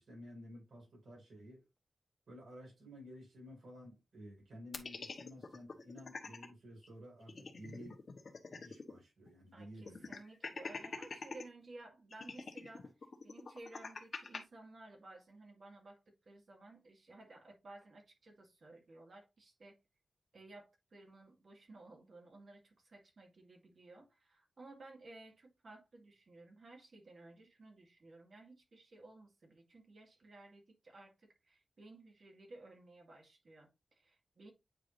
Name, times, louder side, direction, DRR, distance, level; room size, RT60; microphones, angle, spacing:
voice 1, 0.0-1.6 2.3-8.0 8.5-10.1, equal, 85° right, 4.8 m, -53 dB
sound 1, 4.7-6.5 6.8-6.9 7.2-9.0 9.3-9.4 9.9-11.4 12.1-14.4, left 4 dB, 55° left, 1.2 m, -45 dB
voice 2, 9.5-19.8 20.3-34.5, right 2 dB, 60° right, 2.1 m, -56 dB
8.8 x 4.7 x 2.6 m
wide cardioid pair, 110°, 0 cm